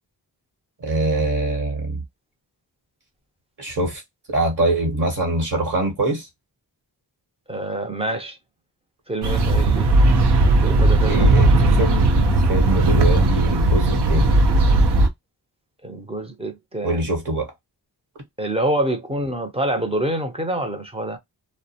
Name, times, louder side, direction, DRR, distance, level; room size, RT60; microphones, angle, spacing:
voice 1, 0.8-2.0 3.6-4.0 4.3-6.3 11.1-12.1 12.5-14.3 16.8-17.5, right 1 dB, 50° right, 1.1 m, -23 dB
voice 2, 7.5-8.4 9.1-9.9 10.6-11.3 15.8-17.0 18.4-21.2, right 1 dB, 15° right, 0.6 m, -26 dB
sound 1, 9.2-15.1, right 2 dB, 75° right, 0.7 m, -16 dB
2.3 x 2.1 x 2.7 m
wide cardioid pair, 115°, 40 cm